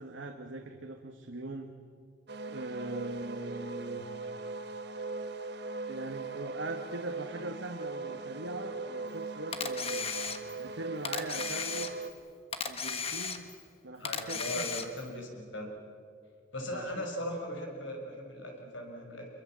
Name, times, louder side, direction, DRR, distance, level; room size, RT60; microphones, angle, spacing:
voice 1, 0.0-1.7 2.5-4.1 5.9-10.2 10.6-11.9 12.7-13.5 13.8-14.7 16.7-16.9, right 2 dB, 80° right, 4 dB, 1.4 m, -41 dB
sound 1, 2.3-12.1, right 3 dB, 60° right, 1.3 m, -40 dB
Camera, 9.5-10.7 11.0-12.2 12.5-13.7 14.0-15.1, left 6 dB, 30° left, 1.4 m, -35 dB
voice 2, 14.0-15.7 16.5-19.3, equal, 80° left, 2 dB, 5.5 m, -39 dB
26.5 x 22.5 x 7.5 m, 2.3 s
head